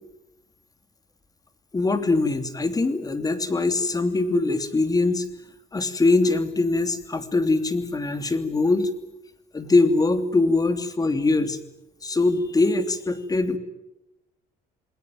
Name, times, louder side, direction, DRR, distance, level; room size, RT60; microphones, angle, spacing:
voice 1, 1.7-5.2 5.7-8.9 9.5-11.6 12.0-13.6, left 3 dB, 20° left, 10 dB, 3.0 m, -22 dB
28.0 x 20.5 x 9.2 m, 0.90 s
cardioid pair, 110°, 17 cm